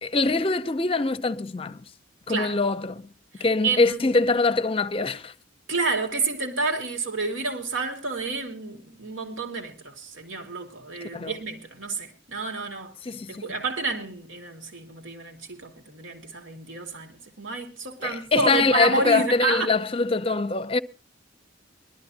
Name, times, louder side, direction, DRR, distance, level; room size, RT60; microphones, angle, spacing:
voice 1, 0.0-1.8 2.3-3.1 3.4-5.3 11.1-11.3 13.0-13.5 18.0-20.8, left 3 dB, 30° left, 0.7 m, -23 dB
voice 2, 3.4-4.0 5.7-12.9 13.3-19.7, right 3 dB, 80° right, 2.6 m, -30 dB
22.0 x 12.5 x 2.8 m
head